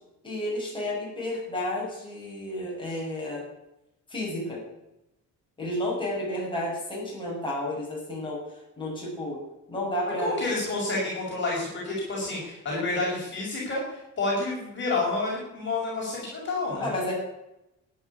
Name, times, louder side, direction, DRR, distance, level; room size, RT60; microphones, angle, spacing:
voice 1, 0.2-3.5 4.1-4.6 5.6-8.4 8.8-9.4 9.7-10.3 16.8-17.1, left 1 dB, 15° left, -5 dB, 7.9 m, -31 dB
voice 2, 10.2-16.9, left 2 dB, 35° left, -4 dB, 6.5 m, -29 dB
14.0 x 10.5 x 8.6 m, 0.90 s
cardioid pair, 155°, 31 cm